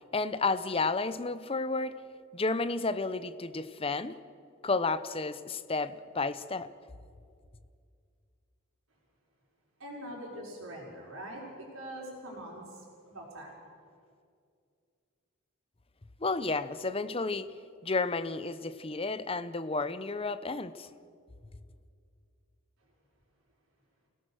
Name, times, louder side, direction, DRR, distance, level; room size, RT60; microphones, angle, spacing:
voice 1, 0.1-1.9 2.3-4.2 4.6-6.7 16.2-17.5 17.8-20.9, left 3 dB, 25° left, 12 dB, 0.7 m, -31 dB
voice 2, 9.8-12.7 13.1-13.6, right 1 dB, 75° right, -2 dB, 5.5 m, -43 dB
29.0 x 17.0 x 6.4 m, 2.3 s
head